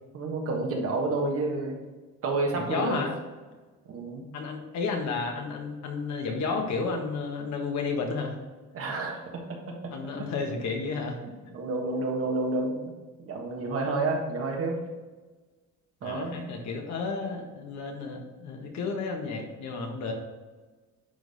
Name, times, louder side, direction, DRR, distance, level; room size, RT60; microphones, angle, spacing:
voice 1, 0.1-1.8 2.2-3.0 3.9-4.2 8.7-9.4 11.2-12.8 13.2-14.8 16.0-16.5, right 3 dB, 50° right, 1 dB, 1.4 m, -29 dB
voice 2, 2.5-3.1 4.3-8.4 9.9-11.2 16.0-20.1, left 4 dB, 65° left, 2 dB, 1.5 m, -32 dB
10.0 x 4.0 x 4.1 m, 1.3 s
cardioid pair, 140°, 30 cm